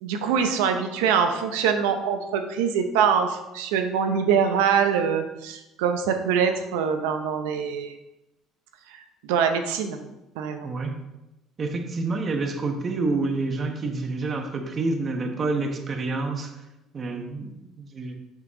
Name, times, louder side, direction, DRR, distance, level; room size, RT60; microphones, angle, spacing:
voice 1, 0.0-7.9 9.2-10.0 10.4-10.7, right 7 dB, 85° right, 7 dB, 0.8 m, -24 dB
voice 2, 10.6-11.0 11.6-16.5 16.9-18.2, right 3 dB, 40° right, 4 dB, 1.2 m, -28 dB
6.2 x 5.8 x 3.7 m, 0.96 s
supercardioid pair, 75°, 0 cm